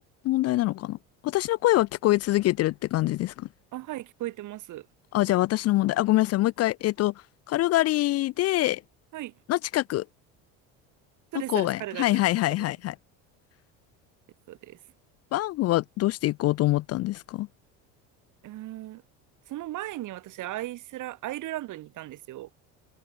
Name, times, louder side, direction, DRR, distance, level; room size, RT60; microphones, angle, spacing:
voice 1, 0.2-1.0 1.2-3.5 5.1-7.1 7.5-8.8 9.5-10.0 11.5-13.0 15.3-17.5, left 16 dB, 45° left, 0.4 m, -24 dB
voice 2, 3.7-4.9 9.1-9.3 11.3-12.2 14.5-14.8 18.4-19.0 19.5-22.5, right 15 dB, 55° right, 1.4 m, -36 dB
supercardioid pair, 105°, 37 cm